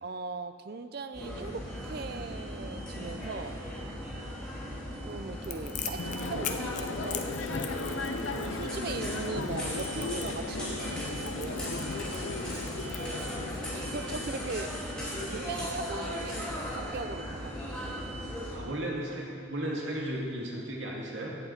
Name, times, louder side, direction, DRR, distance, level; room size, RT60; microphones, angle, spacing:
voice 1, 0.0-3.6 5.0-7.3 8.3-11.7 13.7-14.7 15.3-17.7, right 3 dB, 50° right, 10 dB, 0.5 m, -39 dB
sound 1, 1.1-18.6, equal, 5° left, 2.8 m, -37 dB
Crackle, 5.4-13.7, left 9 dB, 40° left, 0.6 m, -42 dB
sound 2, 6.0-15.8, left 3 dB, 75° left, 0.6 m, -37 dB
voice 2, 18.5-21.3, right 1 dB, 70° right, -2 dB, 2.0 m, -35 dB
15.5 x 8.2 x 4.4 m, 2.3 s
head